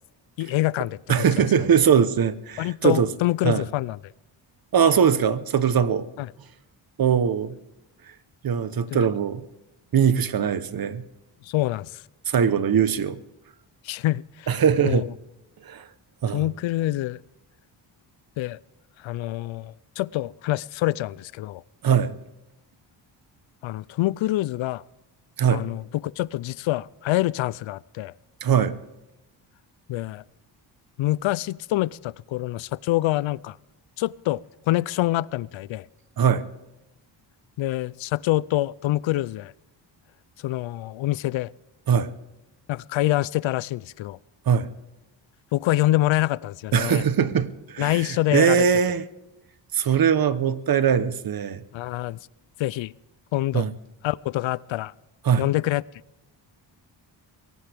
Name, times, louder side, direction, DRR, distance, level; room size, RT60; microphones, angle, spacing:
voice 1, 0.4-1.2 2.6-4.0 6.2-6.3 8.9-9.1 11.4-12.0 13.8-14.5 14.8-15.1 16.3-17.2 18.4-18.6 19.0-21.6 23.6-24.8 25.5-28.1 29.9-30.2 31.0-33.6 34.0-35.9 37.6-39.5 40.4-41.5 42.7-44.2 45.5-47.0 47.8-48.6 51.7-52.2 52.6-52.9 53.3-53.7 54.0-54.9 55.4-55.8, left 16 dB, 75° left, 0.5 m, -26 dB
voice 2, 1.1-3.1 3.4-3.6 4.7-6.1 7.0-7.6 8.4-9.4 9.9-11.0 12.3-13.2 14.5-15.1 15.6-15.9 16.2-16.5 21.8-22.1 25.4-25.6 28.4-28.8 36.2-36.4 41.9-42.1 44.5-44.7 46.7-49.0 49.7-51.6 53.5-53.7 55.2-55.4, right 7 dB, 50° right, 1.0 m, -21 dB
22.5 x 17.5 x 3.5 m
cardioid pair, 115°, 47 cm